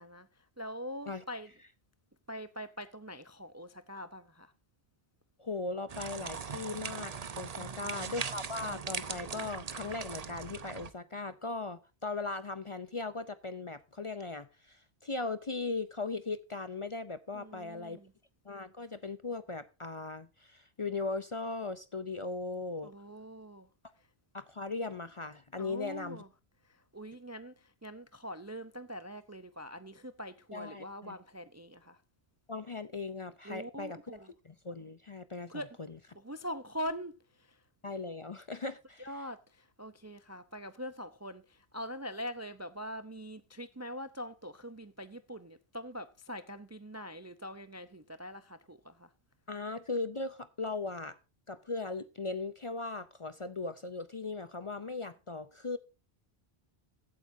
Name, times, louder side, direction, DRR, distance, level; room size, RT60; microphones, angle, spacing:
voice 1, 0.0-1.5 2.3-4.5 7.6-8.1 17.3-18.1 22.8-23.7 25.6-26.3 26.6-32.0 33.4-34.3 35.5-35.8 36.2-37.6 39.0-49.1, equal, 20° right, 0.4 m, -43 dB
voice 2, 5.4-18.0 18.4-22.9 24.3-26.2 30.5-31.2 32.5-36.0 37.8-39.1 49.5-51.2 51.5-55.8, left 3 dB, 35° left, 0.5 m, -38 dB
sound 1, 5.9-10.9, right 6 dB, 40° right, 0.8 m, -40 dB
15.5 x 8.7 x 2.6 m
omnidirectional pair, 1.1 m